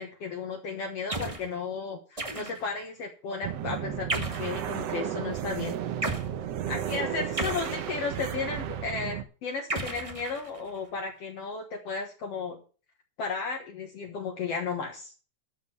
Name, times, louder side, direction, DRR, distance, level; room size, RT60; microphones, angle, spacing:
voice 1, 0.0-5.8 6.7-12.6 13.2-15.1, left 4 dB, 60° left, 2 dB, 2.3 m, -34 dB
sound 1, 1.1-1.5 2.2-2.8 4.1-4.6 6.0-6.3 7.4-8.2 9.7-10.8, right 2 dB, 35° right, 0.5 m, -34 dB
sound 2, 3.4-9.2, right 10 dB, 65° right, 1.9 m, -33 dB
13.0 x 5.2 x 7.8 m, 0.37 s
omnidirectional pair, 3.4 m